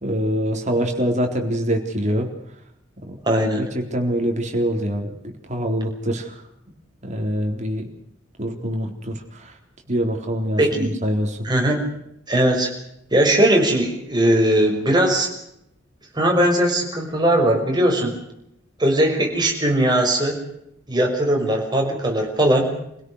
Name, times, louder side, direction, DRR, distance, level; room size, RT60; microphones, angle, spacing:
voice 1, 0.0-2.3 3.1-3.2 3.6-5.1 5.5-6.3 7.0-7.9 8.4-9.5 9.9-11.4, equal, 40° right, 3 dB, 4.0 m, -24 dB
voice 2, 3.3-3.7 10.6-10.9 11.4-11.8 12.3-12.7 13.1-15.3 16.1-18.1 18.8-20.4 20.9-22.7, right 1 dB, 20° right, 0 dB, 6.0 m, -19 dB
28.0 x 17.0 x 6.5 m, 0.78 s
head